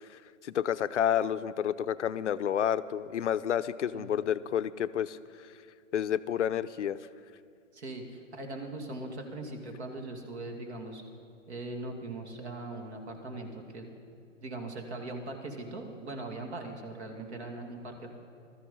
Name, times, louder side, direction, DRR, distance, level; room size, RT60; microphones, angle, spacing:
voice 1, 0.0-5.2 5.9-7.0, left 9 dB, 65° left, 14 dB, 0.6 m, -30 dB
voice 2, 7.7-11.0 11.5-13.9 14.4-18.1, right 2 dB, 55° right, 4 dB, 2.3 m, -40 dB
14.0 x 13.5 x 5.5 m, 2.4 s
figure-of-eight pair, 130°, 39 cm